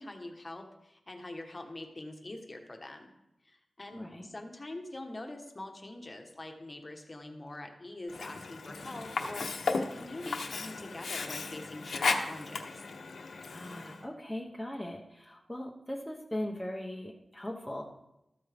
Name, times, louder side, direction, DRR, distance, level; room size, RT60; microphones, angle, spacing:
voice 1, 0.0-3.1 3.4-12.8, left 2 dB, 25° left, 3 dB, 1.1 m, -44 dB
voice 2, 3.9-4.3 13.5-17.8, left 1 dB, ahead, -1 dB, 0.8 m, -39 dB
Sink (filling or washing), 8.1-14.0, left 4 dB, 80° left, 0.9 m, -35 dB
13.5 x 8.5 x 3.5 m, 0.89 s
wide cardioid pair, 155°, 0 cm